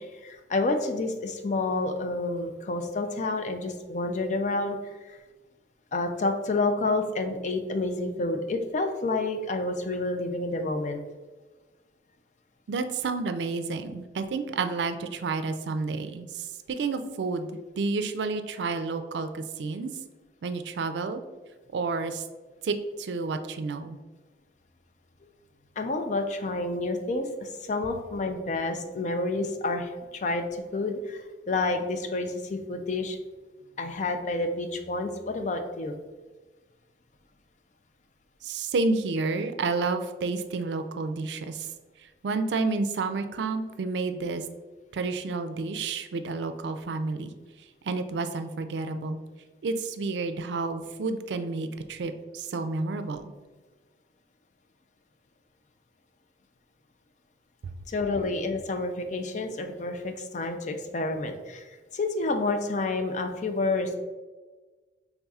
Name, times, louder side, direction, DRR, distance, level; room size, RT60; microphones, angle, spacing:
voice 1, 0.0-4.8 5.1-5.2 5.9-11.0 25.8-33.2 33.8-36.0 57.9-61.6 61.9-64.0, left 2 dB, 45° left, 6 dB, 0.4 m, -29 dB
voice 2, 12.7-19.9 20.4-21.2 21.7-22.2 22.6-24.0 38.4-41.7 42.2-44.4 44.9-47.3 47.8-49.2 49.6-53.3, right 3 dB, 80° right, 8 dB, 0.4 m, -30 dB
5.4 x 3.5 x 2.3 m, 1.3 s
head